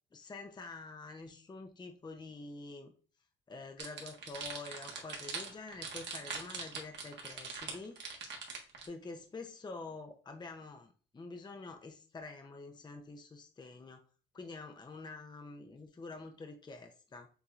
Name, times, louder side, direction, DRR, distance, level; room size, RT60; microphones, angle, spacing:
voice 1, 0.1-2.9 3.5-8.0 8.8-14.0 14.3-17.3, left 3 dB, 20° left, 5 dB, 0.6 m, -47 dB
sound 1, 3.8-8.9, right 5 dB, 65° right, 1.4 m, -42 dB
6.8 x 2.9 x 2.4 m, 0.40 s
cardioid pair, 90°, 20 cm